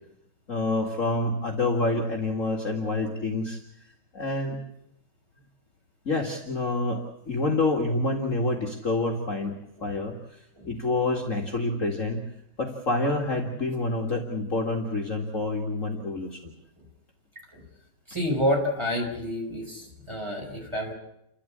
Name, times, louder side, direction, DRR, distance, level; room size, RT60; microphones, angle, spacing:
voice 1, 0.5-3.6 4.1-4.6 6.1-7.0 7.3-9.5 9.8-10.2 10.6-12.2 12.6-16.5, left 2 dB, 40° left, 1 dB, 2.3 m, -27 dB
voice 2, 18.1-20.9, equal, 10° right, 0 dB, 5.5 m, -29 dB
29.5 x 13.0 x 8.7 m, 0.79 s
omnidirectional pair, 2.3 m